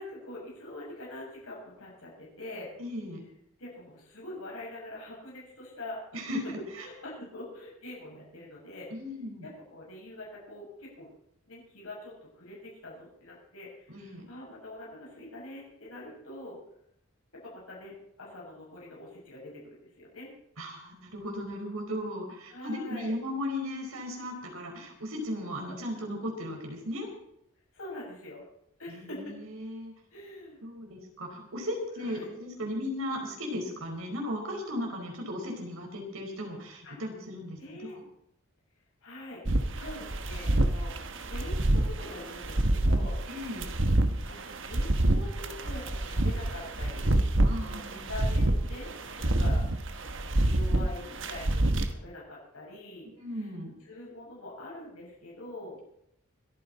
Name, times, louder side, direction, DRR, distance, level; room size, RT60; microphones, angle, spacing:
voice 1, 0.0-2.7 3.6-6.1 6.8-8.9 9.4-11.1 11.5-16.6 17.3-20.3 22.5-23.1 25.6-25.7 27.7-28.4 28.8-29.3 30.1-30.6 32.0-32.3 36.8-37.0 37.6-38.0 39.0-39.4 39.7-43.2 44.3-44.4 44.7-48.9 49.2-49.7 50.4-53.5 53.9-55.8, left 1 dB, 80° left, -4 dB, 7.0 m, -44 dB
voice 2, 2.8-3.2 6.1-6.8 8.9-9.5 13.9-14.3 20.6-27.1 28.9-29.9 30.6-38.0 43.3-43.7 47.4-48.1 53.2-53.7, left 1 dB, 80° right, 1 dB, 4.6 m, -36 dB
sound 1, 39.5-51.9, right 1 dB, 60° right, 1.3 m, -27 dB
26.0 x 9.6 x 4.2 m, 0.76 s
head